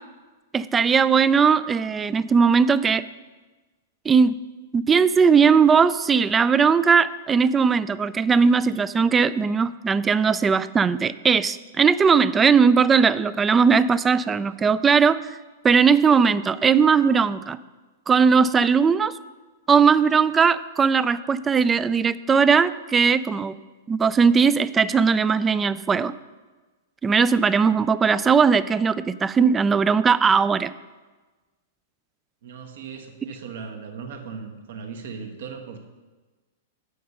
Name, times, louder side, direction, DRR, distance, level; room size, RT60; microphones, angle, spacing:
voice 1, 0.5-3.0 4.1-4.4 4.7-15.2 15.6-17.6 18.1-19.2 19.7-23.6 23.9-26.1 27.0-30.7, right 5 dB, 20° right, 16 dB, 0.3 m, -19 dB
voice 2, 32.4-35.9, right 5 dB, 70° right, 3 dB, 1.3 m, -38 dB
8.3 x 6.5 x 5.4 m, 1.3 s
hypercardioid pair, 115°, 0 cm